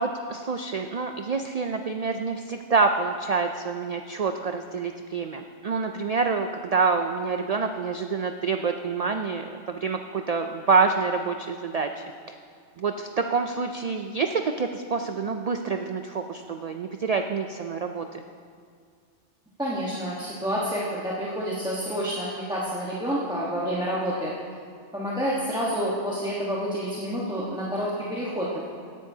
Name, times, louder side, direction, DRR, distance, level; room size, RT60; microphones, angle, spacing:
voice 1, 0.0-12.0 12.8-18.2, right 4 dB, 85° right, 6 dB, 0.3 m, -27 dB
voice 2, 19.6-24.3 24.9-28.7, equal, 5° right, -7 dB, 1.2 m, -28 dB
17.5 x 10.0 x 2.8 m, 2.2 s
omnidirectional pair, 1.2 m